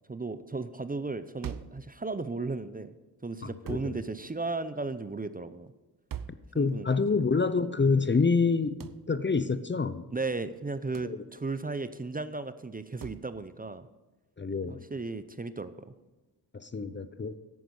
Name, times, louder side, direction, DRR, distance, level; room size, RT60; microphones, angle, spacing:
voice 1, 0.1-3.0 3.2-5.7 6.5-6.9 10.1-13.9 14.7-15.9, right 3 dB, 20° right, 13 dB, 0.7 m, -35 dB
sound 1, 1.4-1.9 3.7-4.0 6.1-6.5 8.8-9.1 10.9-11.2 13.0-13.3, right 9 dB, 55° right, 0.7 m, -40 dB
voice 2, 3.4-4.0 6.5-10.0 11.0-11.2 14.4-14.8 16.5-17.4, left 4 dB, 30° left, 13 dB, 0.7 m, -27 dB
10.5 x 9.5 x 5.4 m, 1.2 s
cardioid pair, 50°, 40 cm